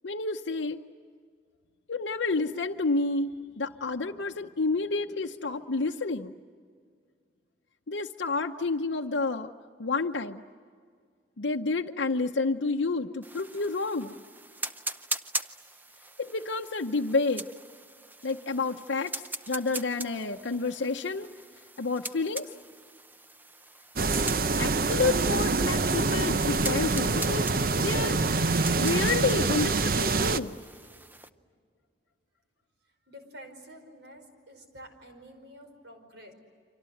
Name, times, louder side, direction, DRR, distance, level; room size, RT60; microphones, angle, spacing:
voice 1, 0.0-0.8 1.9-6.3 7.9-9.5 9.8-10.4 11.4-14.2 16.2-17.5 18.2-19.1 19.5-21.3 21.8-22.5 24.6-28.2 28.8-30.6, left 3 dB, 85° left, 3 dB, 0.8 m, -29 dB
sound 1, 13.2-31.3, right 2 dB, 10° right, 0.6 m, -41 dB
sound 2, 24.0-30.4, right 3 dB, 50° right, 0.7 m, -26 dB
voice 2, 33.1-36.3, equal, 70° right, 5 dB, 5.1 m, -49 dB
30.0 x 25.5 x 7.8 m, 2.1 s
head